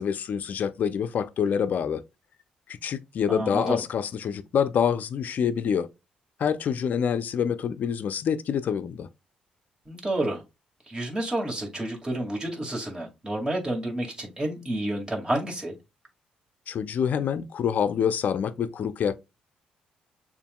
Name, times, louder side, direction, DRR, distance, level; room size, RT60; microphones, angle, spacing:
voice 1, 0.0-2.0 2.7-5.9 6.4-9.1 16.7-19.2, left 7 dB, 60° left, 0.4 m, -26 dB
voice 2, 3.3-3.8 9.9-10.4 10.9-15.7, right 1 dB, 25° right, 2.0 m, -30 dB
6.7 x 2.5 x 2.2 m
hypercardioid pair, 50°, 3 cm